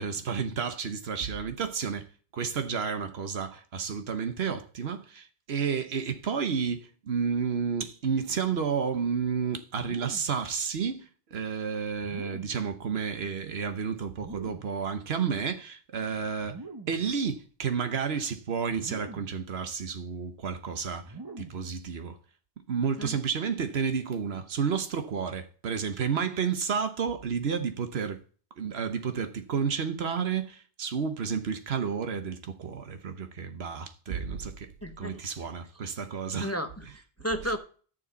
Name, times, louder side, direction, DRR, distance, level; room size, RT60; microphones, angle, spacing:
voice 1, 0.0-2.1 2.3-16.6 16.9-22.2 22.7-28.2 28.6-34.7 35.0-36.5, right 6 dB, 85° right, 1.2 m, -31 dB
sound 1, 9.8-10.5 12.0-12.7 14.1-14.8 16.4-17.1 18.7-19.5 21.0-21.7, right 3 dB, 25° right, 0.8 m, -44 dB
voice 2, 34.8-35.5 36.4-37.6, equal, 15° left, 0.7 m, -34 dB
11.5 x 7.0 x 4.1 m
omnidirectional pair, 1.0 m